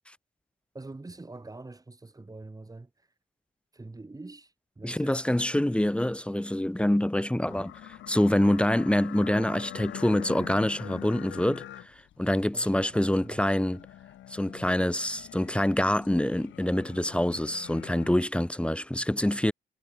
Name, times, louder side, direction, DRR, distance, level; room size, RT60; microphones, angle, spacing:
voice 1, 0.7-2.9 3.7-5.3 12.5-13.5, right 2 dB, 20° right, 4.6 m, -45 dB
voice 2, 4.8-13.8 14.3-19.5, left 1 dB, 5° left, 1.0 m, -26 dB
sound 1, 7.5-18.2, left 13 dB, 70° left, 1.1 m, -45 dB
cardioid pair, 90°, 20 cm